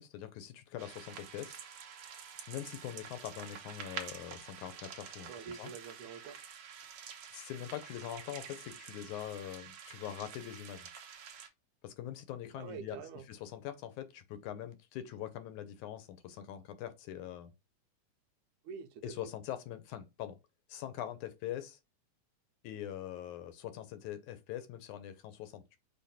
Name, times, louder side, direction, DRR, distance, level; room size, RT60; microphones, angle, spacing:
voice 1, 0.0-1.6 2.5-5.7 7.3-10.9 11.8-13.0 13.3-17.5 19.0-20.4 20.7-21.8 22.6-25.8, left 11 dB, 75° left, 2.1 m, -43 dB
sound 1, 0.8-11.5, right 7 dB, 60° right, 1.9 m, -48 dB
voice 2, 5.3-6.4 12.6-13.2 18.6-19.1, right 7 dB, 75° right, 2.2 m, -46 dB
6.5 x 3.0 x 5.6 m
omnidirectional pair, 3.7 m